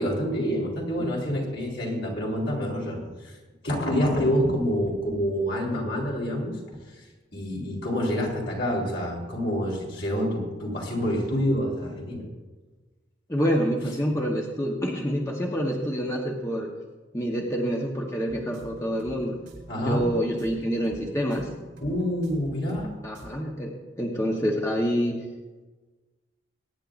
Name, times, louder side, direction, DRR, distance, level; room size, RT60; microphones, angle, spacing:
voice 1, 0.0-3.4 3.6-6.6 6.9-7.0 7.3-12.2 19.7-20.0 21.8-22.9, equal, 70° left, -2 dB, 3.8 m, -27 dB
voice 2, 13.3-16.7 17.1-19.3 19.8-21.5 23.0-25.2, equal, 15° left, -1 dB, 1.2 m, -27 dB
sound 1, 18.3-22.9 23.1-23.3, right 1 dB, 80° right, 4.3 m, -47 dB
22.5 x 9.9 x 2.6 m, 1.3 s
head